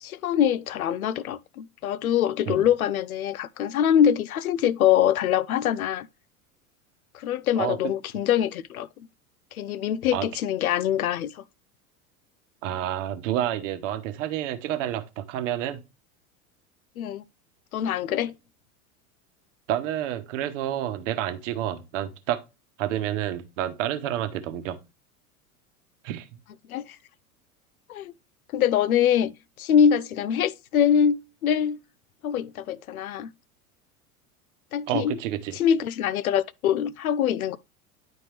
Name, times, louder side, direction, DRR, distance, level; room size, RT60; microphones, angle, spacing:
voice 1, 0.0-6.1 7.1-8.9 9.6-11.3 17.0-17.2 17.7-18.4 26.7-26.8 27.9-28.1 28.5-29.3 29.6-31.8 32.2-33.3 34.7-35.2 35.5-37.6, left 9 dB, 75° left, 0.6 m, -24 dB
voice 2, 12.6-15.8 19.7-22.4 22.8-24.8 26.0-26.4 34.9-35.6, right 11 dB, 60° right, 1.0 m, -29 dB
9.9 x 4.3 x 3.3 m
figure-of-eight pair, 85°, 43 cm